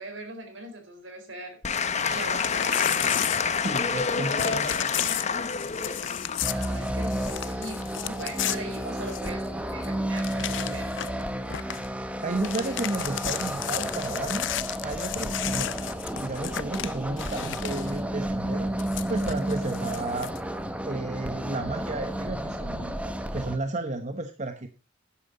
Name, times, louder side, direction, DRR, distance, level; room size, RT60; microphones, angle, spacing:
voice 1, 0.0-1.6 2.1-3.3 6.5-10.9, right 2 dB, 70° right, 5 dB, 4.3 m, -40 dB
Applause / Crowd, 1.6-7.9, left 6 dB, 35° left, 1.0 m, -28 dB
Crumpling crinkling / Tearing, 1.9-4.1 4.4-9.5 9.8-9.9 10.2-11.2 11.5-11.9 12.2-18.0 18.8-20.4, left 12 dB, 65° left, 0.6 m, -34 dB
voice 2, 3.6-5.2 12.2-14.5 14.8-15.7 16.2-18.7 19.1-20.5 20.8-23.0 23.3-24.7, right 2 dB, 40° right, 7 dB, 1.0 m, -32 dB
sound 1, 6.4-23.6, right 1 dB, 5° right, 1.1 m, -32 dB
11.0 x 11.0 x 4.1 m, 0.29 s
head